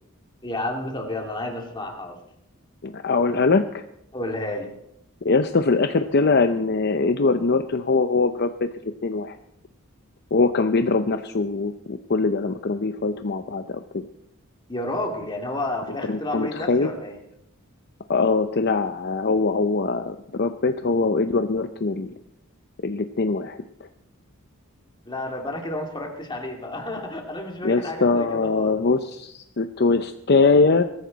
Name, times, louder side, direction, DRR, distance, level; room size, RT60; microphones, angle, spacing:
voice 1, 0.4-2.2 4.1-4.7 14.7-17.2 25.1-28.8, left 1 dB, 20° left, 1 dB, 2.5 m, -31 dB
voice 2, 2.8-3.8 5.2-9.4 10.3-14.1 16.1-16.9 18.1-22.1 22.8-23.6 27.6-30.8, left 3 dB, 50° left, 8 dB, 0.6 m, -22 dB
22.0 x 14.0 x 4.1 m, 0.79 s
head